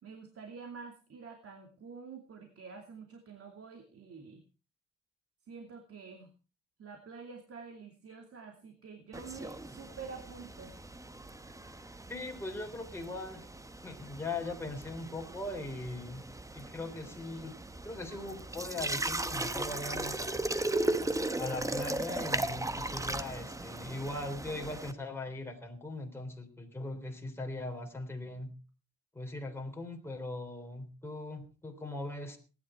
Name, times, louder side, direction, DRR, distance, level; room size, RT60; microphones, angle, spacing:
voice 1, 0.0-4.4 5.5-6.3 6.8-10.7, right 5 dB, 50° right, 4 dB, 2.6 m, -48 dB
sound 1, 9.1-24.9, right 2 dB, 10° right, 1.0 m, -37 dB
voice 2, 12.1-13.4 13.8-16.3 16.5-17.6 17.8-20.4 21.4-28.5 29.1-32.4, left 2 dB, 10° left, 2 dB, 3.6 m, -40 dB
18.5 x 10.5 x 4.5 m, 0.34 s
cardioid pair, 90°, 30 cm